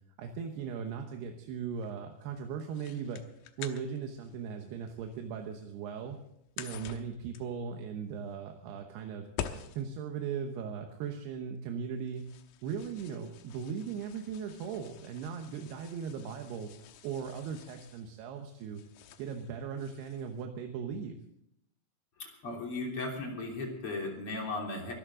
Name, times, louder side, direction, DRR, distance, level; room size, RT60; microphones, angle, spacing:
voice 1, 0.2-3.2 3.6-6.2 6.6-9.3 9.7-12.3 12.6-18.8 19.2-21.1, right 7 dB, 80° right, 4 dB, 3.1 m, -38 dB
sound 1, 0.6-20.4, left 10 dB, 85° left, 3.1 m, -49 dB
voice 2, 22.2-24.9, left 2 dB, 35° left, 0 dB, 3.9 m, -36 dB
23.5 x 13.5 x 3.8 m, 0.80 s
omnidirectional pair, 4.7 m